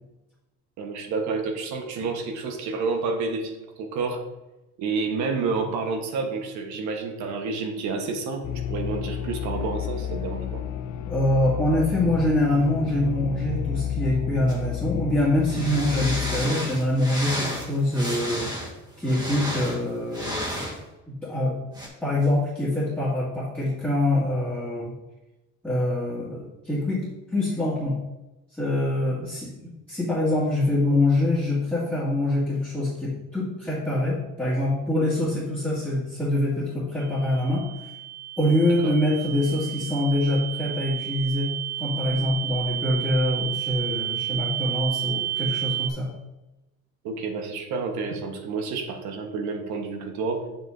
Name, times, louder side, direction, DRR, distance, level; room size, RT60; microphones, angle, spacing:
voice 1, 0.8-4.2 4.8-10.7 38.8-38.9 47.0-50.4, right 4 dB, 70° right, 3 dB, 1.4 m, -29 dB
sound 1, 8.4-16.5, left 9 dB, 65° left, 0.5 m, -31 dB
voice 2, 11.1-18.5 19.0-20.6 21.1-21.6 22.0-24.9 25.6-27.0 27.3-28.0 28.5-37.7 38.4-46.1, left 1 dB, 5° left, -11 dB, 2.0 m, -25 dB
sound 2, 14.5-14.6 15.4-20.8 21.7-21.9, equal, 15° right, 1.6 m, -32 dB
sound 3, 37.0-45.9, right 12 dB, 85° right, 1.7 m, -31 dB
8.4 x 7.2 x 2.7 m, 1.0 s
cardioid pair, 145°, 30 cm